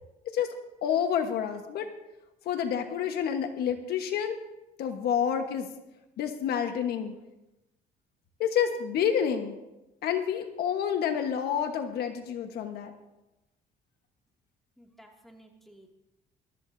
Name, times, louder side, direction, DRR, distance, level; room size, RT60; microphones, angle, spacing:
voice 1, 0.8-1.9 2.4-4.4 4.8-5.7 6.2-7.1 8.4-9.6 10.0-12.9, left 8 dB, 70° left, 6 dB, 1.4 m, -28 dB
voice 2, 14.8-15.9, right 1 dB, ahead, 0 dB, 2.4 m, -54 dB
22.5 x 13.5 x 2.8 m, 0.96 s
cardioid pair, 110°, 17 cm